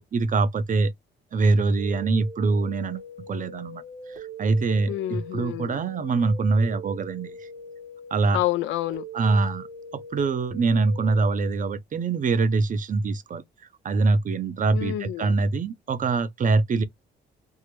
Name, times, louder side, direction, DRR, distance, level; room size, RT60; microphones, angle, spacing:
voice 1, 0.1-0.9 1.3-3.8 4.1-7.5 8.1-8.4 9.1-9.7 9.9-13.4 13.8-16.8, right 3 dB, 40° right, 0.6 m, -24 dB
sound 1, 1.8-11.3, right 1 dB, 90° right, 1.6 m, -42 dB
voice 2, 4.9-5.8 8.3-9.1 14.7-15.4, left 15 dB, 80° left, 0.4 m, -28 dB
3.6 x 2.0 x 3.0 m
cardioid pair, 90°, 20 cm